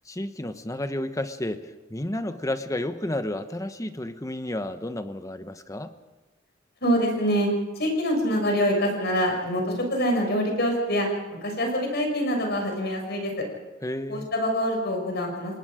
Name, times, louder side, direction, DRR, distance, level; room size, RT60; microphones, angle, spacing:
voice 1, 0.0-5.9 13.8-14.3, left 1 dB, 15° left, 10 dB, 1.1 m, -31 dB
voice 2, 6.8-7.5 7.7-11.1 11.4-13.3 14.1-15.6, equal, 60° left, 2 dB, 6.4 m, -25 dB
29.5 x 18.5 x 5.1 m, 1.2 s
head